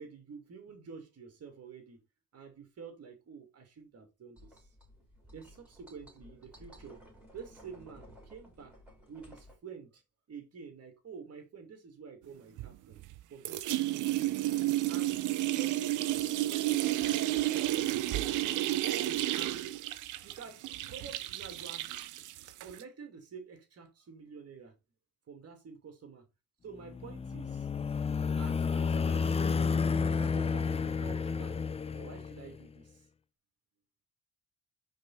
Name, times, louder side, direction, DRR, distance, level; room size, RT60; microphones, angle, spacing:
voice 1, 0.0-2.0 2.3-4.7 5.3-7.1 7.3-8.8 9.1-10.0 10.3-13.0 13.3-14.4 14.9-15.2 15.5-18.4 18.7-18.9 19.3-19.8 20.2-22.0 22.3-22.4 22.6-24.8 25.3-26.2 26.6-27.7 28.4-29.5 29.9-31.6 31.9-33.0, right 5 dB, 55° right, 2.6 m, -49 dB
sound 1, 4.4-9.6, equal, 5° right, 3.7 m, -55 dB
sound 2, 12.6-13.2 13.5-22.8, right 15 dB, 85° right, 0.7 m, -31 dB
sound 3, 26.8-32.6, left 5 dB, 20° left, 0.4 m, -31 dB
5.3 x 4.5 x 4.2 m
cardioid pair, 90°, 30 cm